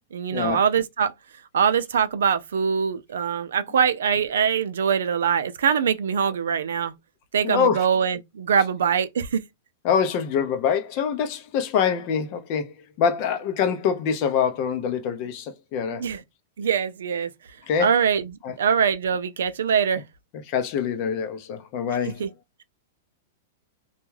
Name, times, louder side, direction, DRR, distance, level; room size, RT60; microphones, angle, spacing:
voice 1, 0.1-1.1 1.5-6.9 7.3-9.4 16.0-16.2 16.6-17.3 17.8-20.0 22.2-22.3, right 7 dB, 85° right, 0.4 m, -23 dB
voice 2, 7.4-7.9 9.8-16.1 17.7-17.9 18.4-18.5 20.5-22.2, left 7 dB, 45° left, 0.6 m, -25 dB
2.3 x 2.2 x 3.1 m
hypercardioid pair, 135°, 0 cm